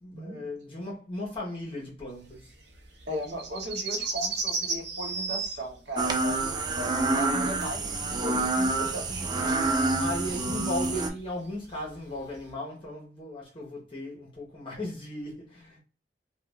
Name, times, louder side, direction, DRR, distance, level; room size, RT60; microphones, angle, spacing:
voice 1, 0.0-2.4 10.0-15.8, left 1 dB, 30° left, 0.8 m, -36 dB
sound 1, 2.3-8.6 8.9-12.5, right 4 dB, 70° right, 0.6 m, -35 dB
voice 2, 3.0-9.8, equal, 85° right, 1.0 m, -37 dB
sound 2, 6.0-11.1, right 2 dB, 25° right, 0.3 m, -27 dB
2.4 x 2.2 x 3.0 m
head